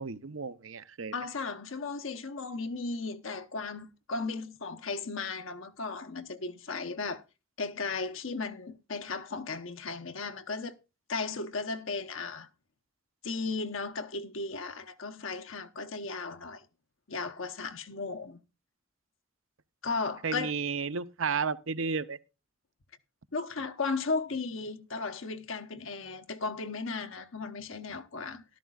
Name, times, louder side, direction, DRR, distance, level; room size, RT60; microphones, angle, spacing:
voice 1, 0.0-1.1 20.2-22.2, right 5 dB, 70° right, 0.7 m, -32 dB
voice 2, 1.1-7.2 7.6-10.8 11.1-12.5 13.2-16.7 17.1-18.4 19.8-20.5 23.3-28.4, left 4 dB, 70° left, 0.9 m, -35 dB
13.5 x 12.0 x 2.4 m
head